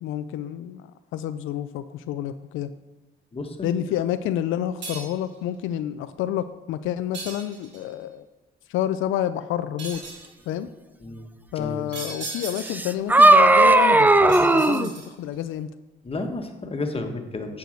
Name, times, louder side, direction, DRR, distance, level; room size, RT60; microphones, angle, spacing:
voice 1, 0.0-0.8 1.1-2.7 3.6-8.2 8.7-10.0 10.5-10.7 11.5-15.7, left 11 dB, 90° left, 11 dB, 0.4 m, -29 dB
voice 2, 3.3-3.8 11.0-11.3 11.5-11.9 16.0-17.6, left 2 dB, 30° left, 4 dB, 1.4 m, -32 dB
sound 1, 4.8-5.3 7.1-7.9 9.8-10.3 11.9-13.0 14.3-15.3, right 3 dB, 65° right, 3.0 m, -37 dB
sound 2, 12.7-14.9, right 2 dB, 10° right, 0.4 m, -15 dB
9.2 x 4.8 x 6.5 m, 1.2 s
cardioid pair, 90°, 20 cm